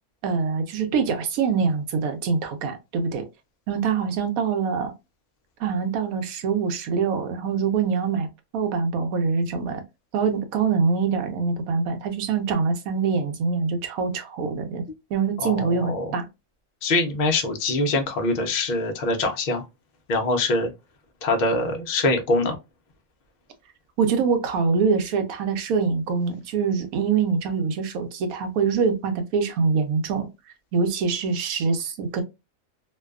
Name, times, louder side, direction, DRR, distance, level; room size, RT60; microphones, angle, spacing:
voice 1, 0.2-3.3 3.7-4.9 5.6-9.8 10.1-14.8 15.1-16.3 24.0-30.3 30.7-32.2, right 5 dB, 85° right, 1.1 m, -24 dB
voice 2, 15.4-16.1 16.8-19.6 20.1-20.7 21.2-22.6, left 2 dB, 65° left, 0.4 m, -23 dB
2.5 x 2.2 x 2.3 m
omnidirectional pair, 1.4 m